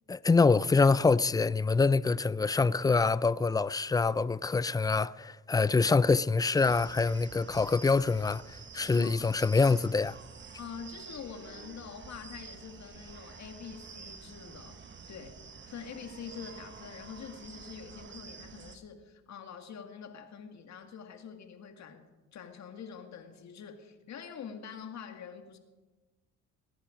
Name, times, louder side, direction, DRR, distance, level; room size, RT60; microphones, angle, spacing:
voice 1, 0.1-10.2, left 4 dB, 15° left, 0.3 m, -25 dB
sound 1, 6.6-18.8, right 5 dB, 40° right, 1.3 m, -49 dB
voice 2, 8.9-9.4 10.6-14.8 15.1-22.0 22.3-25.6, left 7 dB, 65° left, 2.0 m, -45 dB
20.0 x 10.5 x 5.1 m
cardioid pair, 90°, 30 cm